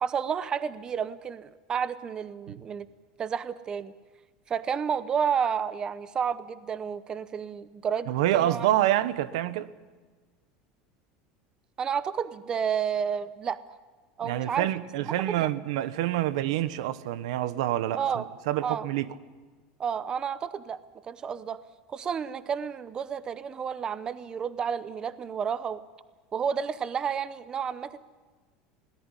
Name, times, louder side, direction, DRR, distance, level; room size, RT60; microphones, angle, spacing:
voice 1, 0.0-2.9 3.2-3.9 4.5-8.7 11.8-13.6 14.2-14.7 15.3-15.5 18.0-18.2 18.6-18.9 19.8-21.6 21.9-25.8 26.3-28.0, right 7 dB, 25° right, 0.8 m, -31 dB
voice 2, 8.1-9.7 14.2-19.1, right 13 dB, 85° right, 1.0 m, -27 dB
21.5 x 18.0 x 9.8 m
supercardioid pair, 145°, 3 cm